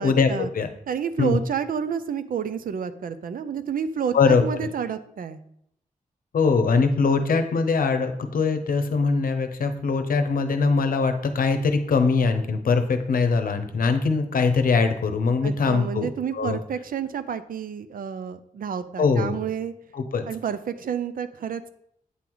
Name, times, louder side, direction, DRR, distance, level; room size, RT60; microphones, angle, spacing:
voice 1, 0.0-0.5 0.9-5.4 15.4-19.7 20.3-21.7, right 7 dB, 80° right, 12 dB, 0.5 m, -30 dB
voice 2, 6.3-16.6 19.0-19.4 19.9-20.2, left 4 dB, 85° left, 8 dB, 0.7 m, -22 dB
8.2 x 3.9 x 4.6 m, 0.73 s
wide cardioid pair, 160°, 14 cm